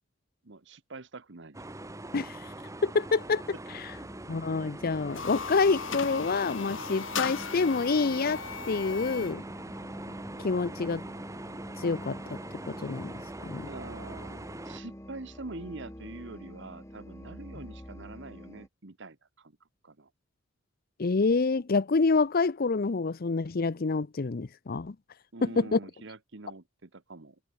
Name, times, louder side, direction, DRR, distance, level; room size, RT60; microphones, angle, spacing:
voice 1, 0.4-1.6 13.7-19.6 19.8-20.1 25.3-27.4, right 3 dB, 65° right, 1.3 m, -45 dB
sound 1, 1.5-14.8, right 2 dB, 15° right, 1.0 m, -43 dB
voice 2, 2.1-2.4 2.8-3.4 4.3-9.4 10.4-11.0 11.8-12.4 12.7-13.1 13.4-13.6 21.0-24.9 25.4-25.8, left 4 dB, 50° left, 0.6 m, -27 dB
sound 2, 3.9-18.7, equal, 15° left, 7.1 m, -47 dB
sound 3, 5.0-9.4, left 6 dB, 75° left, 2.3 m, -37 dB
head